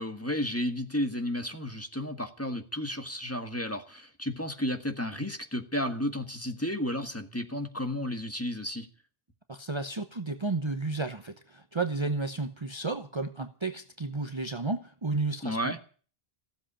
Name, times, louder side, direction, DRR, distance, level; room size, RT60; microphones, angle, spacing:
voice 1, 0.0-8.9 15.4-15.8, left 1 dB, 15° left, 6 dB, 1.5 m, -32 dB
voice 2, 9.5-15.8, right 3 dB, 30° right, 8 dB, 0.9 m, -32 dB
15.5 x 7.8 x 9.9 m, 0.41 s
omnidirectional pair, 1.0 m